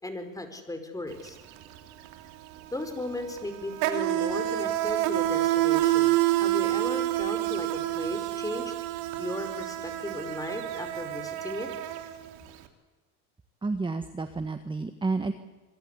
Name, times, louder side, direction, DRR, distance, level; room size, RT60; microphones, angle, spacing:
voice 1, 0.0-1.4 2.7-6.1 6.4-8.7 9.2-11.7, left 1 dB, 10° left, 7 dB, 5.0 m, -36 dB
Insect, 1.1-1.3 1.6-12.6, right 14 dB, 75° right, 3.2 m, -28 dB
voice 2, 13.6-15.3, right 3 dB, 15° right, 9 dB, 1.5 m, -30 dB
26.5 x 22.0 x 8.3 m, 1.2 s
supercardioid pair, 110°, 38 cm